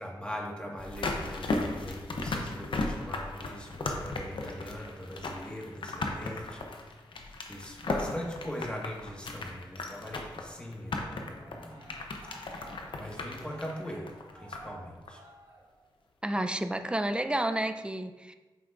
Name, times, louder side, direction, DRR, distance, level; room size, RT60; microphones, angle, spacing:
voice 1, 0.0-6.7 7.2-11.9 12.2-12.7 13.0-15.2, equal, 10° left, -1 dB, 1.7 m, -41 dB
sound 1, 0.8-14.8 15.1-15.2, left 2 dB, 85° left, 0.7 m, -36 dB
Cheering, 10.7-16.0 16.4-16.8, right 2 dB, 55° right, 1.6 m, -54 dB
voice 2, 16.2-18.3, right 1 dB, 10° right, 7 dB, 0.5 m, -30 dB
8.3 x 5.8 x 2.5 m, 1.2 s
cardioid pair, 50°, 8 cm